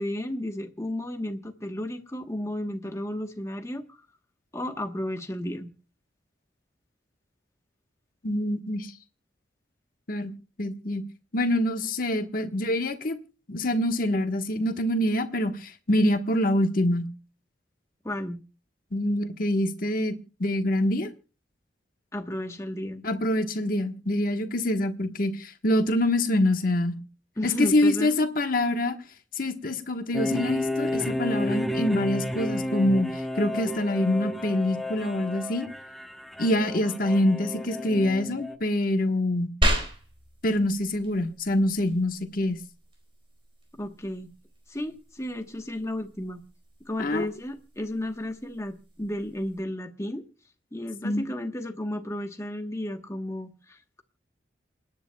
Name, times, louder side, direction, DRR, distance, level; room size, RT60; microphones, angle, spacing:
voice 1, 0.0-4.0 4.5-5.7 18.0-18.4 22.1-23.0 27.4-28.2 43.7-44.3 44.7-46.4 46.8-50.2 50.7-54.0, left 1 dB, 15° left, 1.1 m, -33 dB
voice 2, 8.2-8.9 10.1-10.3 10.6-11.0 11.3-13.2 13.5-17.1 18.9-20.1 20.4-21.1 23.0-27.0 27.4-29.0 29.3-33.1 33.4-35.7 36.4-39.5 40.4-42.6 47.0-47.3 51.0-51.3, left 1 dB, 50° left, 1.3 m, -25 dB
sound 1, 30.1-38.5, left 1 dB, ahead, 0.8 m, -32 dB
sound 2, 39.6-49.6, right 1 dB, 30° right, 4.2 m, -35 dB
28.0 x 10.0 x 2.3 m
head